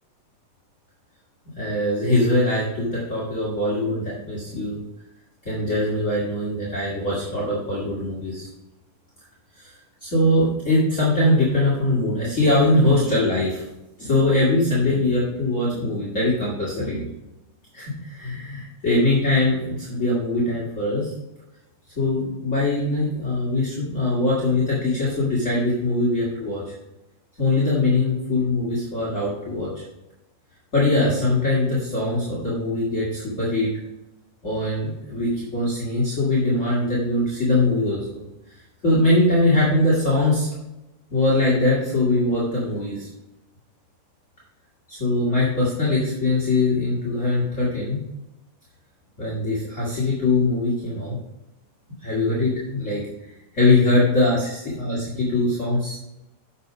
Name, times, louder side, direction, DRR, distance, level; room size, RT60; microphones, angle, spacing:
voice 1, 1.5-4.8 5.4-8.5 9.5-9.7 10.0-13.6 14.0-17.1 17.7-21.1 21.9-26.6 27.4-29.8 30.7-33.7 34.4-38.0 38.8-40.5 41.1-43.1 44.9-48.0 49.2-51.2 52.0-56.0, left 2 dB, 30° left, -7 dB, 1.4 m, -22 dB
8.3 x 6.8 x 5.1 m, 0.95 s
omnidirectional pair, 4.6 m